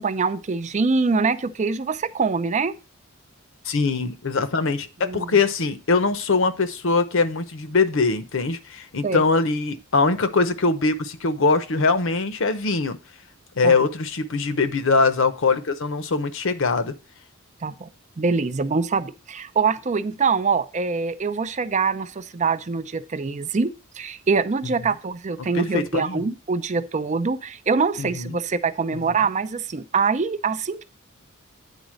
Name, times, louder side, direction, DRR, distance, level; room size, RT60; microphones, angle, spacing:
voice 1, 0.0-2.7 5.0-5.4 9.0-9.2 13.6-13.8 17.6-17.9 18.2-30.8, right 4 dB, 35° right, 0.5 m, -24 dB
voice 2, 3.6-13.0 13.6-17.0 24.8-24.9 25.5-26.2 28.0-28.4 28.9-29.0, left 4 dB, 65° left, 0.8 m, -22 dB
9.1 x 4.0 x 6.3 m
head